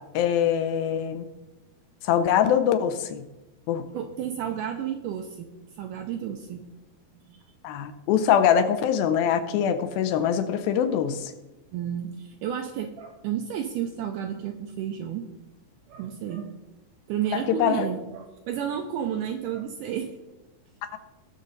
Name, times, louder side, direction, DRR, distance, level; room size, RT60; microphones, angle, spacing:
voice 1, 0.1-1.3 2.0-3.2 3.7-3.8 7.6-11.3 17.3-17.9 20.8-21.0, left 9 dB, 80° left, 9 dB, 2.4 m, -23 dB
voice 2, 3.9-5.5 5.8-6.6 7.3-7.4 11.7-15.3 15.9-16.5 17.1-20.1, right 9 dB, 80° right, 5 dB, 1.9 m, -31 dB
19.0 x 6.4 x 4.0 m, 1.0 s
omnidirectional pair, 4.4 m